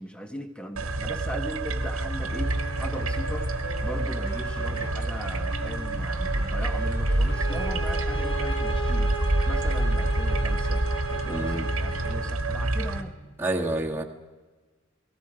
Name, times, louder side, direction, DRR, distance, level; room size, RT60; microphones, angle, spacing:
voice 1, 0.0-13.2, equal, 5° left, 6 dB, 1.4 m, -39 dB
sound 1, 0.8-13.0, right 1 dB, 90° right, 1.7 m, -27 dB
Wind instrument woodwind instrument, 2.2-9.2, left 3 dB, 55° left, 3.9 m, -45 dB
sound 2, 7.3-12.2, right 2 dB, 25° left, 2.1 m, -36 dB
voice 2, 11.3-11.7 13.4-14.0, right 1 dB, 10° right, -1 dB, 1.8 m, -28 dB
28.5 x 19.0 x 5.0 m, 1.3 s
head